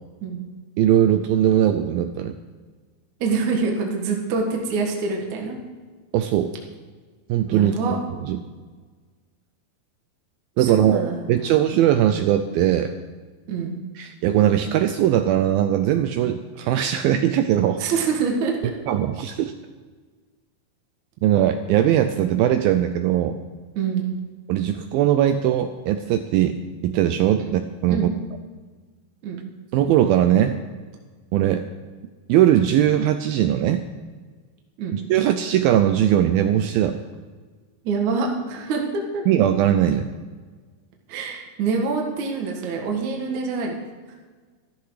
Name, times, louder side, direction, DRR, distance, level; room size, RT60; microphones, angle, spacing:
voice 1, 0.8-2.4 6.1-6.5 7.3-7.8 8.2-8.4 10.6-13.0 14.0-17.8 18.9-19.5 21.2-23.4 24.5-26.6 26.8-28.1 29.7-30.6 31.3-31.6 32.3-33.8 34.9-37.0 39.3-40.1, right 11 dB, 80° right, 8 dB, 2.3 m, -20 dB
voice 2, 3.2-5.6 7.5-8.0 10.6-11.5 13.5-13.8 17.8-18.7 23.8-24.2 27.5-27.6 27.9-28.1 29.2-29.4 34.8-34.9 37.8-39.2 41.1-43.7, right 5 dB, 55° right, 1 dB, 2.7 m, -25 dB
14.0 x 13.0 x 4.9 m, 1.4 s
omnidirectional pair, 4.6 m